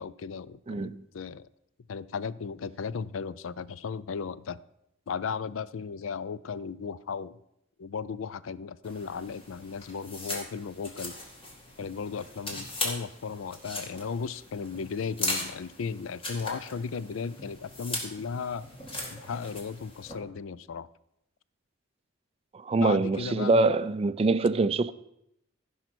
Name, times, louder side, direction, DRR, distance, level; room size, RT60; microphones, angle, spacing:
voice 1, 0.0-1.5 1.9-4.6 5.1-7.4 7.8-11.2 11.8-18.7 19.1-20.9 22.7-23.8, left 5 dB, 80° left, 0.4 m, -36 dB
voice 2, 0.7-1.0 22.5-24.9, right 3 dB, 30° right, 0.3 m, -24 dB
sound 1, 8.8-20.1, left 2 dB, 30° left, 2.0 m, -38 dB
14.5 x 5.5 x 6.1 m
head